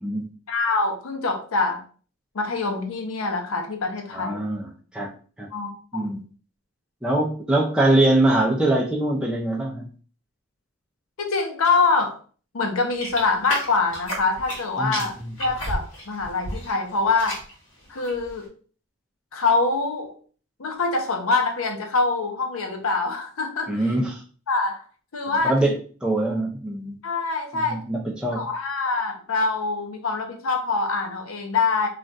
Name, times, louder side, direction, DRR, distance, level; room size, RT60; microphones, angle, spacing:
voice 1, 0.5-1.8 2.3-4.4 5.5-6.2 11.2-12.2 12.5-15.1 15.4-17.4 17.9-18.5 19.3-20.1 20.6-23.8 24.5-24.8 25.1-25.5 27.0-27.8 28.3-31.9, left 3 dB, 85° left, 4 dB, 0.6 m, -24 dB
voice 2, 4.1-5.1 5.4-5.5 5.9-6.2 7.0-9.8 14.8-15.3 23.7-24.2 25.4-27.0 27.5-28.5, right 1 dB, 5° right, -3 dB, 0.4 m, -23 dB
sound 1, 13.0-14.6 14.9-16.8 17.0-17.5 18.0-18.3, equal, 65° left, 1.2 m, -31 dB
2.4 x 2.2 x 3.9 m, 0.41 s
head